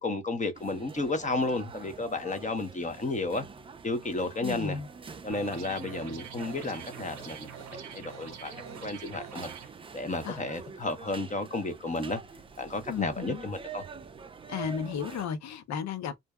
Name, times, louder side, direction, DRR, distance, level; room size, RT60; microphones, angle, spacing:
voice 1, 0.0-3.5 3.8-4.8 5.2-7.5 7.9-8.5 8.8-9.5 9.9-12.2 12.6-13.8, left 2 dB, 25° left, 0.8 m, -32 dB
sound 1, 0.5-15.3, right 5 dB, 20° right, 0.3 m, -46 dB
voice 2, 4.4-4.9 10.2-10.4 12.9-13.4 14.5-16.2, left 7 dB, 65° left, 0.7 m, -34 dB
sound 2, 5.3-9.7, right 8 dB, 60° right, 0.8 m, -45 dB
2.6 x 2.2 x 2.2 m
cardioid pair, 90°, 30 cm